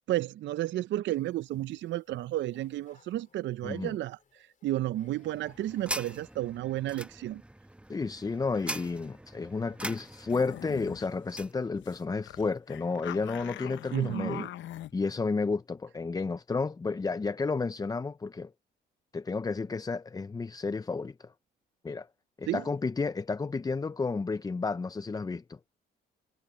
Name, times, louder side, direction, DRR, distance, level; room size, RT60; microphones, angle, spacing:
voice 1, 0.1-4.2 4.6-7.4 13.9-14.5 22.5-22.6, right 14 dB, 65° right, 0.5 m, -32 dB
sound 1, 1.1-6.4, left 6 dB, 40° left, 4.1 m, -64 dB
voice 2, 3.6-4.0 7.9-14.5 14.9-18.5 19.1-21.3 21.8-22.1 22.4-25.6, left 4 dB, 20° left, 0.5 m, -32 dB
sound 2, 5.0-11.6, right 1 dB, 5° right, 0.9 m, -42 dB
sound 3, 10.3-11.1 11.4-11.5 11.8-12.0 12.3-14.9, left 13 dB, 70° left, 0.7 m, -43 dB
cardioid pair, 90°, 20 cm